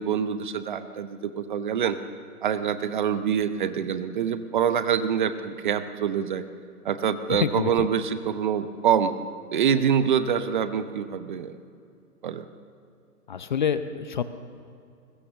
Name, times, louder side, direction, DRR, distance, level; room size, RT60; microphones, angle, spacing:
voice 1, 0.0-2.0 2.4-6.4 6.8-9.1 9.5-11.6 12.2-12.5, right 8 dB, 30° right, 11 dB, 0.8 m, -25 dB
voice 2, 7.3-7.9 13.3-14.2, left 8 dB, 30° left, 12 dB, 0.7 m, -27 dB
21.5 x 20.5 x 7.1 m, 2.5 s
hypercardioid pair, 145°, 47 cm